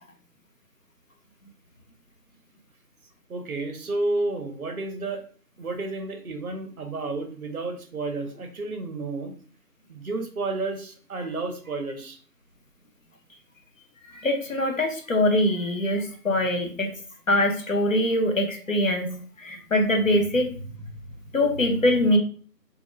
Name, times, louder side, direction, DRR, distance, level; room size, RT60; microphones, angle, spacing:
voice 1, 3.3-5.2 5.6-9.3 9.9-12.2, right 2 dB, 60° right, 5 dB, 0.5 m, -31 dB
voice 2, 14.1-16.9 17.3-20.5 21.3-22.2, left 1 dB, 55° left, 2 dB, 0.5 m, -23 dB
2.1 x 2.0 x 3.0 m, 0.43 s
figure-of-eight pair, 165°, 50 cm